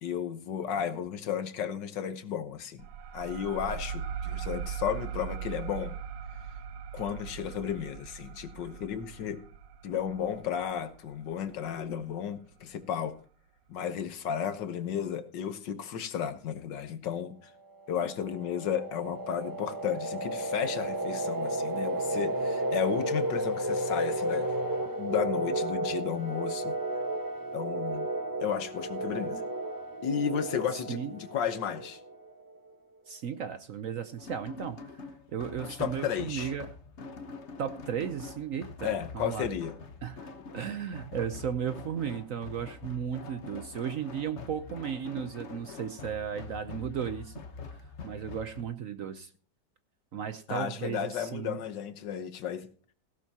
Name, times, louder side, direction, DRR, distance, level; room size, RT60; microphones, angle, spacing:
voice 1, 0.0-2.9 3.1-6.0 6.9-9.4 9.8-13.1 13.7-17.5 17.9-24.5 25.0-26.8 27.5-28.1 28.4-29.4 30.0-32.0 35.6-36.5 38.8-39.8 50.5-52.7, left 8 dB, 85° left, 1.7 m, -33 dB
sound 1, 2.8-12.0, right 8 dB, 80° right, 1.4 m, -40 dB
sound 2, 17.8-32.4, right 1 dB, 15° right, 1.1 m, -33 dB
voice 2, 33.1-34.8 35.3-36.7 37.6-39.5 40.0-40.3 40.5-47.3 48.0-49.3 50.1-51.6, right 8 dB, 60° right, 1.0 m, -35 dB
sound 3, 34.2-48.6, left 5 dB, 45° left, 1.2 m, -45 dB
16.5 x 12.0 x 2.8 m
omnidirectional pair, 1.9 m